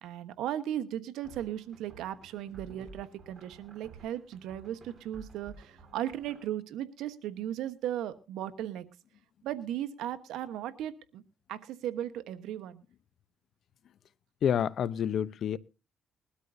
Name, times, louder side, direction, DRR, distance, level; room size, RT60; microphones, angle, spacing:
voice 1, 0.0-8.9 9.4-11.2 11.5-12.8, right 11 dB, 90° right, 1.2 m, -36 dB
sound 1, 1.2-6.4, right 3 dB, 45° right, 5.2 m, -53 dB
voice 2, 14.4-15.6, left 9 dB, 65° left, 0.7 m, -28 dB
21.0 x 13.0 x 2.7 m
cardioid pair, 90°, 0 cm